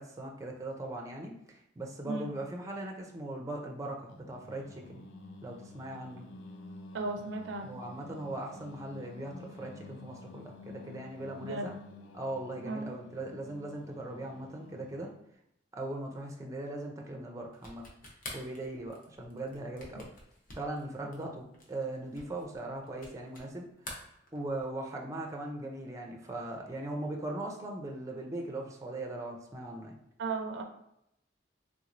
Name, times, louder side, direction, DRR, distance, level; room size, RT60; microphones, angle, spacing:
voice 1, 0.0-5.0 5.4-6.2 7.6-11.7 12.1-15.1 15.7-17.8 18.3-20.1 20.6-23.6 24.3-30.0, right 2 dB, 20° right, 1 dB, 0.4 m, -39 dB
Singing, 4.1-15.2, left 3 dB, 75° left, 0.3 m, -50 dB
voice 2, 6.9-7.8 11.4-11.7 12.6-12.9 30.2-30.6, right 3 dB, 75° right, 5 dB, 0.5 m, -35 dB
sound 1, 17.5-23.5 23.8-24.8, left 1 dB, 50° left, 0.8 m, -48 dB
3.4 x 3.0 x 2.5 m, 0.78 s
head